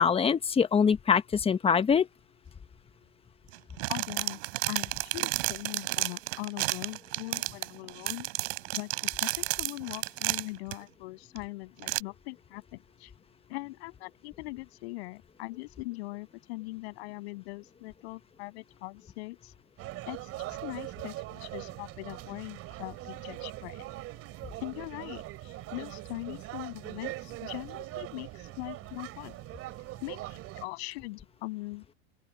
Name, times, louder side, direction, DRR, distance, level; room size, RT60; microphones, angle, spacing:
voice 1, 0.0-2.1, left 6 dB, 15° left, 1.2 m, -24 dB
sound 1, 3.5-10.7 11.4-11.5 11.8-12.0, right 25 dB, 60° right, 6.8 m, -32 dB
voice 2, 3.9-4.4 4.7-8.3 8.7-13.1 13.5-19.5 20.1-23.8 24.6-29.4 30.0-32.0, left 23 dB, 65° left, 7.1 m, -41 dB
sound 2, 19.8-30.7, right 17 dB, 40° right, 3.3 m, -41 dB
open air
supercardioid pair, 130°, 35 cm